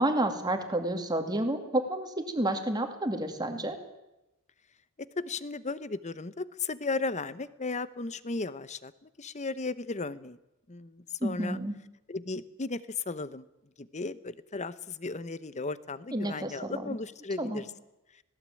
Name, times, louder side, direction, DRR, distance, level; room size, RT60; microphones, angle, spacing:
voice 1, 0.0-3.8 11.2-11.7 16.1-17.0 17.4-17.6, right 1 dB, 20° right, 5 dB, 2.5 m, -30 dB
voice 2, 5.2-10.4 10.7-11.6 12.1-13.4 13.8-17.7, left 3 dB, 30° left, 16 dB, 0.9 m, -35 dB
19.0 x 18.0 x 9.1 m, 0.93 s
head